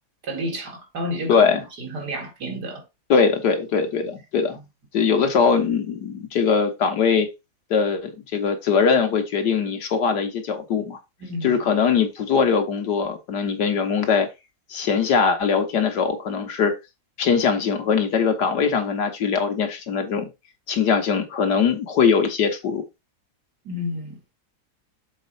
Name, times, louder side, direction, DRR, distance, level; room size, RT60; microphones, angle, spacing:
voice 1, 0.2-2.9 11.2-11.6 23.6-24.2, equal, 75° right, 2.6 m, -31 dB
voice 2, 1.3-1.6 3.1-4.6 4.9-7.3 7.7-11.0 11.4-14.3 14.7-16.7 17.2-20.3 20.7-22.8, left 6 dB, 80° left, 2.0 m, -21 dB
7.0 x 4.3 x 4.0 m
omnidirectional pair, 1.8 m